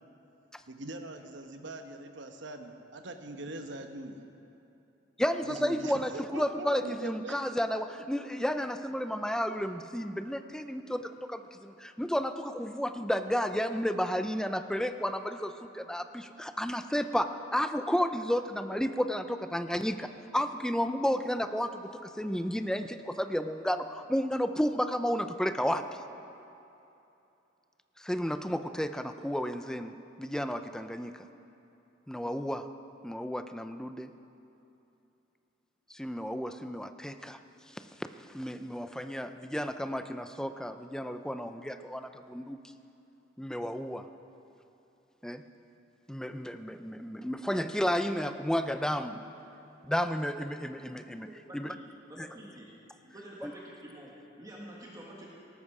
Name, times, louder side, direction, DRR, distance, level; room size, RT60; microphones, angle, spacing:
voice 1, 0.7-4.2 5.4-7.4, right 2 dB, 65° right, 6 dB, 1.1 m, -42 dB
voice 2, 5.2-26.0 28.0-31.3 32.1-32.7 33.0-34.1 35.9-37.4 37.7-37.9 38.3-42.6 43.4-44.1 45.2-45.4 46.1-49.2 49.8-51.3 51.5-51.7 52.2-52.3 53.4-53.5, equal, 5° left, 9 dB, 0.5 m, -32 dB
voice 3, 51.3-52.7 53.0-55.3, right 1 dB, 20° right, -4 dB, 1.7 m, -48 dB
18.0 x 13.5 x 4.9 m, 2.8 s
head